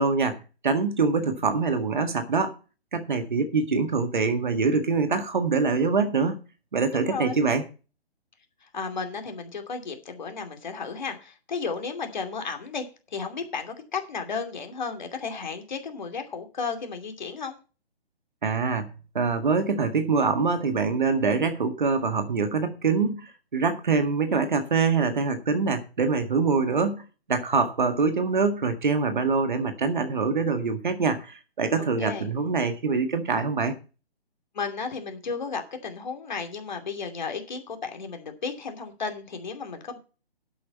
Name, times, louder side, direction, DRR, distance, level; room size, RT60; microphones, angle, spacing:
voice 1, 0.0-2.5 2.9-6.4 6.7-7.6 18.4-18.9 19.1-27.0 27.3-33.7, right 4 dB, 50° right, 1.9 m, -24 dB
voice 2, 6.9-7.4 8.6-12.8 13.1-17.6 31.8-32.3 34.5-40.0, left 5 dB, 45° left, 2.7 m, -34 dB
12.0 x 8.5 x 4.4 m
figure-of-eight pair, 140°, 31 cm